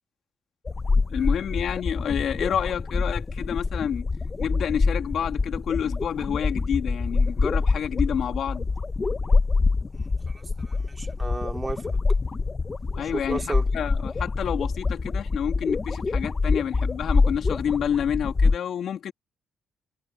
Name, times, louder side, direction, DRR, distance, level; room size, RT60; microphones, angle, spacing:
sound 1, 0.7-18.6, left 4 dB, 30° left, 0.8 m, -25 dB
voice 1, 1.1-4.1 4.4-8.7 13.0-19.1, left 8 dB, 65° left, 2.6 m, -29 dB
voice 2, 10.3-12.0 13.1-13.7, right 2 dB, 20° right, 3.9 m, -34 dB
cardioid pair, 90°, 0 cm